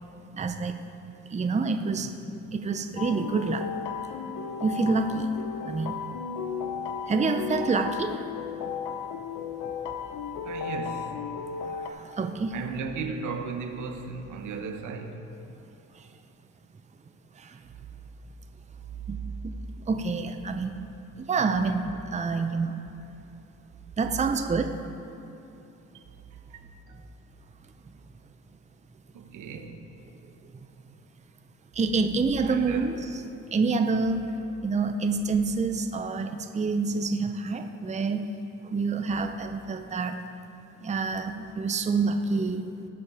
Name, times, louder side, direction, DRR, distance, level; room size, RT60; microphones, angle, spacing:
voice 1, 0.3-0.8 1.3-2.1 2.5-3.7 4.6-5.3 5.6-6.0 7.1-8.2 11.7-12.5 15.9-16.0 17.4-17.6 19.1-19.5 19.9-20.9 21.2-22.8 24.0-24.8 31.7-33.0 33.5-34.2 34.6-38.3 38.6-40.2 40.8-42.7, right 4 dB, 25° right, 0.6 m, -27 dB
sound 1, 3.0-11.9, left 6 dB, 90° left, 0.7 m, -34 dB
voice 2, 10.4-11.1 12.5-15.2 25.9-26.0 26.5-27.0 29.1-29.9 32.4-32.9, right 5 dB, 80° right, 1.1 m, -36 dB
18.0 x 6.0 x 4.9 m
cardioid pair, 90°, 30 cm